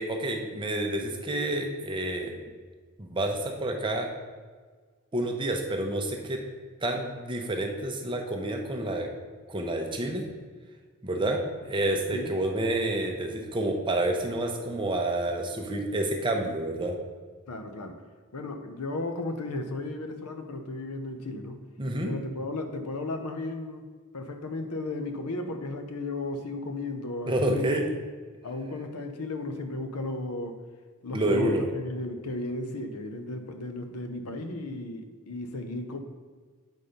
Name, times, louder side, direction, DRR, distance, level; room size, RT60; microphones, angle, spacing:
voice 1, 0.0-2.3 3.0-4.1 5.1-6.4 6.8-9.1 9.5-10.2 11.0-16.9 21.8-22.1 27.3-27.8 31.1-31.7, right 1 dB, 20° right, 2 dB, 0.7 m, -29 dB
voice 2, 17.5-18.0 18.3-21.6 22.0-23.9 24.1-28.0 28.4-30.6 31.0-36.0, left 2 dB, 90° left, 6 dB, 0.8 m, -35 dB
8.0 x 4.3 x 5.1 m, 1.5 s
head